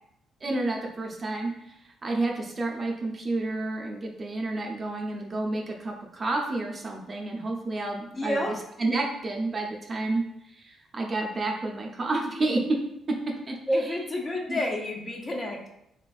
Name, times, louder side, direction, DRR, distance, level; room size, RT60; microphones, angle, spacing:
voice 1, 0.4-1.5 2.0-10.2 10.6-12.8 13.1-13.2 13.5-13.6 13.9-14.0 14.5-14.6, right 2 dB, 35° right, 0 dB, 0.5 m, -30 dB
voice 2, 8.2-8.5 13.7-15.7, left 1 dB, 30° left, 1 dB, 0.5 m, -29 dB
3.3 x 2.3 x 2.3 m, 0.81 s
cardioid pair, 90°, 0 cm